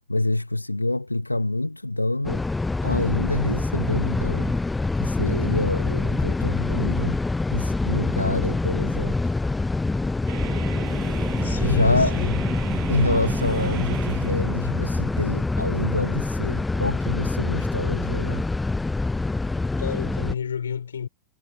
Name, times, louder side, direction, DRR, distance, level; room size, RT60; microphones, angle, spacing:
voice 1, 0.1-2.4 2.8-4.5 5.0-7.2 7.5-9.2 11.6-12.2 12.9-18.4, left 2 dB, 85° left, 2.0 m, -27 dB
sound 1, 2.2-20.3, left 3 dB, 10° left, 0.7 m, -25 dB
sound 2, 10.3-16.7, right 35 dB, 45° right, 7.3 m, -37 dB
voice 2, 11.4-12.4 19.8-21.1, left 7 dB, 70° left, 6.2 m, -29 dB
figure-of-eight pair, 90°, 0 cm